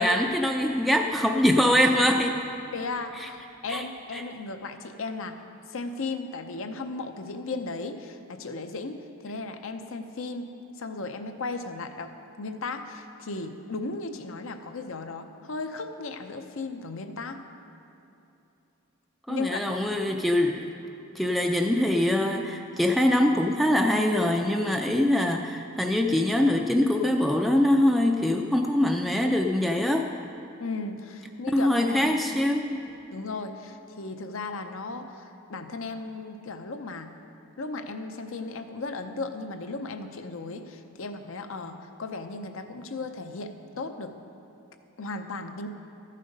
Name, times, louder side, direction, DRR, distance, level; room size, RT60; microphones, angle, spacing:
voice 1, 0.0-2.4 3.2-3.3 3.7-3.8 4.1-4.2 19.3-20.7 21.2-30.1 31.5-32.9, left 1 dB, ahead, 2 dB, 0.3 m, -23 dB
voice 2, 2.7-5.4 5.7-10.5 10.8-12.1 12.4-17.4 19.3-19.8 30.6-32.2 33.1-37.1 37.6-44.1 45.0-45.7, left 3 dB, 70° left, 7 dB, 0.7 m, -36 dB
13.0 x 7.5 x 5.3 m, 2.8 s
head